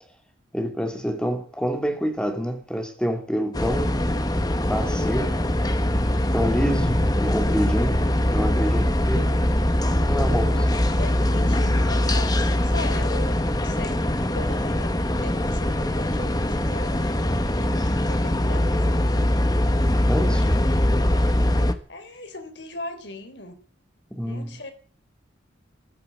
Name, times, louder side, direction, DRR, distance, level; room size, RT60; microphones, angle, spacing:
voice 1, 0.5-4.0 4.6-5.3 6.3-9.4 10.0-10.8 20.1-20.6 24.1-24.5, equal, 5° left, 2.4 m, -27 dB
sound 1, 3.5-21.7, left 1 dB, 20° left, 1.2 m, -22 dB
voice 2, 10.2-19.1 21.9-23.6 24.3-24.7, left 2 dB, 65° left, 3.6 m, -39 dB
15.0 x 10.5 x 8.5 m
head